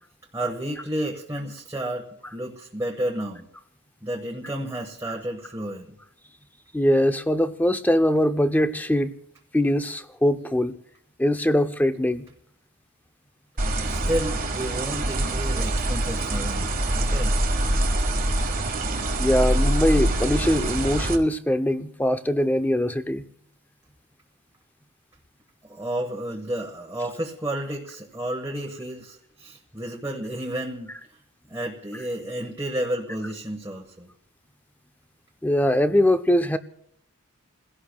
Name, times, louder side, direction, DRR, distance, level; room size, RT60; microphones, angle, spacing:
voice 1, 0.3-2.1 2.3-3.4 4.0-5.9 13.8-17.3 25.6-31.2 31.5-34.1, right 1 dB, 15° right, 1.2 m, -31 dB
voice 2, 6.7-9.1 9.5-10.8 11.2-12.3 19.2-23.2 35.4-36.6, left 1 dB, 10° left, 0.5 m, -22 dB
sound 1, 13.6-21.2, right 1 dB, 40° right, 1.5 m, -24 dB
29.0 x 16.5 x 2.2 m
head